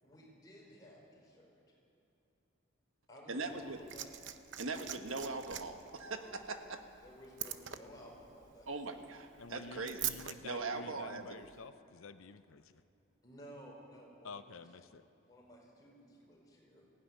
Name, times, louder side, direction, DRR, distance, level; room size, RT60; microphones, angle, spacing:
voice 1, 0.0-1.6 3.1-4.2 7.0-9.2 10.4-11.0 13.2-14.6 15.2-16.8, equal, 20° left, -3 dB, 4.8 m, -55 dB
voice 2, 3.3-3.8 4.6-6.8 8.7-10.2 10.4-11.2, right 3 dB, 80° right, 6 dB, 1.4 m, -40 dB
Liquid, 3.4-10.4 11.4-11.5, right 11 dB, 60° right, 0.8 m, -44 dB
voice 3, 9.4-12.6 14.2-15.0, left 4 dB, 85° left, 11 dB, 0.7 m, -50 dB
17.0 x 16.0 x 9.7 m, 2.9 s
head